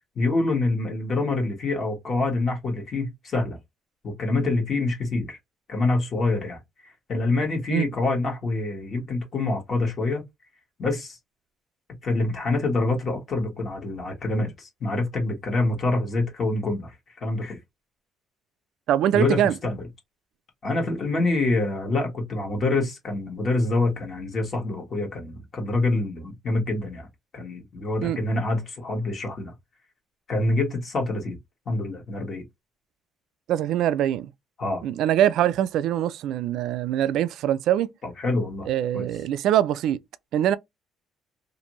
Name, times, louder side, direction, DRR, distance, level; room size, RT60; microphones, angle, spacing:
voice 1, 0.2-3.6 4.0-5.4 5.7-10.2 10.8-11.2 12.0-16.9 17.2-17.6 19.1-19.8 20.6-27.1 27.3-29.5 30.3-31.4 31.7-32.4 34.6-34.8 38.0-38.7 38.9-39.0, left 2 dB, 45° left, 1.1 m, -26 dB
voice 2, 18.9-19.5 28.0-28.2 33.5-34.3 34.8-37.9 38.7-40.0 40.3-40.6, right 11 dB, 70° right, 0.3 m, -23 dB
2.6 x 2.5 x 2.9 m
cardioid pair, 110°, 0 cm